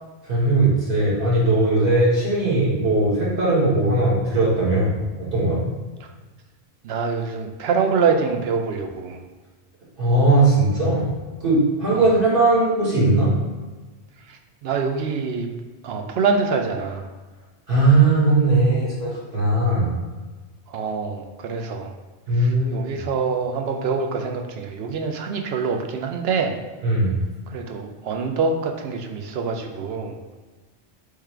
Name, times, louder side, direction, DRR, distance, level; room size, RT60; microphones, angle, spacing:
voice 1, 0.2-4.9 5.2-5.7 10.0-11.1 11.4-13.3 17.7-20.0 22.3-23.0 26.8-27.1, right 2 dB, 55° right, -7 dB, 1.8 m, -19 dB
voice 2, 6.8-9.2 11.9-12.1 14.3-15.5 15.8-17.1 20.7-21.9 22.3-26.6 27.5-30.4, right 5 dB, 70° right, 3 dB, 0.8 m, -25 dB
3.6 x 3.3 x 4.4 m, 1.3 s
omnidirectional pair, 1.1 m